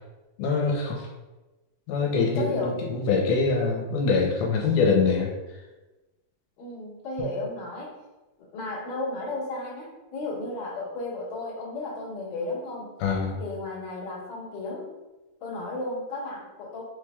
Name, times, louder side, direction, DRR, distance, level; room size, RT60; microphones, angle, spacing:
voice 1, 0.4-1.1 1.9-5.3 13.0-13.4, left 4 dB, 80° left, -2 dB, 2.5 m, -24 dB
voice 2, 2.1-2.8 6.6-7.9 8.5-12.9 13.4-14.9 15.4-16.8, left 2 dB, 50° left, -9 dB, 1.7 m, -34 dB
5.6 x 3.3 x 2.2 m, 1.1 s
omnidirectional pair, 4.4 m